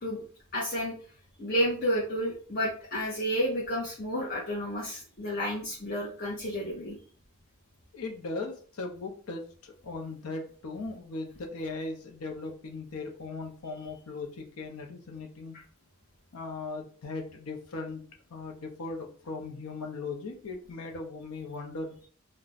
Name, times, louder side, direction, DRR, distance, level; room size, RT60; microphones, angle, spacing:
voice 1, 0.5-1.0 1.4-7.0, equal, 40° left, -4 dB, 0.7 m, -31 dB
voice 2, 7.9-15.6 16.3-18.0 18.3-21.9, left 3 dB, 90° left, 2 dB, 0.6 m, -38 dB
2.4 x 2.2 x 3.9 m, 0.43 s
head